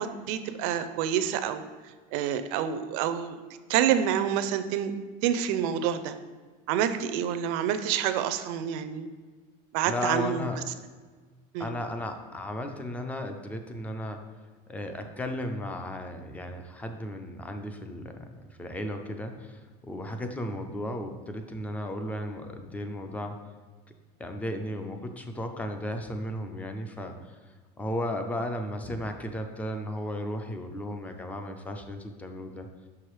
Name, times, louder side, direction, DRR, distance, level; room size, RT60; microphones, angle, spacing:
voice 1, 0.0-1.6 2.1-3.4 3.7-4.9 5.2-6.1 6.7-9.1 9.7-10.5 11.5-11.7, right 9 dB, 55° right, 11 dB, 0.5 m, -27 dB
voice 2, 9.9-10.6 11.6-14.2 14.7-23.4 24.2-32.7, left 1 dB, 10° left, 6 dB, 0.3 m, -35 dB
5.8 x 4.9 x 4.6 m, 1.4 s
cardioid pair, 165°, 20 cm